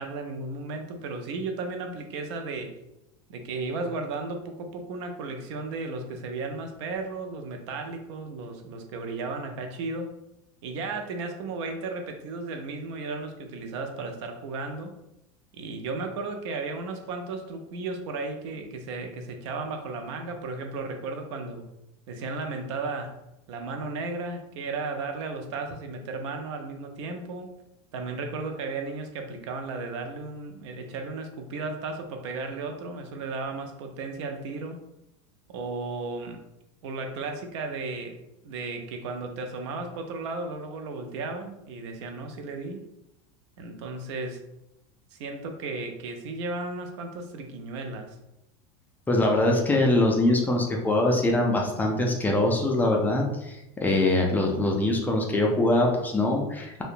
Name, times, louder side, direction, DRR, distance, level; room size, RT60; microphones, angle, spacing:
voice 1, 0.0-2.7 3.3-10.1 10.6-14.9 15.5-21.7 22.1-23.1 23.5-27.5 27.9-34.8 35.5-36.4 36.8-38.2 38.4-42.9 43.6-44.4 45.1-48.2, right 3 dB, 75° right, 5 dB, 0.5 m, -34 dB
voice 2, 49.1-56.8, left 2 dB, 10° left, 0 dB, 0.3 m, -23 dB
2.7 x 2.1 x 2.5 m, 0.89 s
supercardioid pair, 140°, 15 cm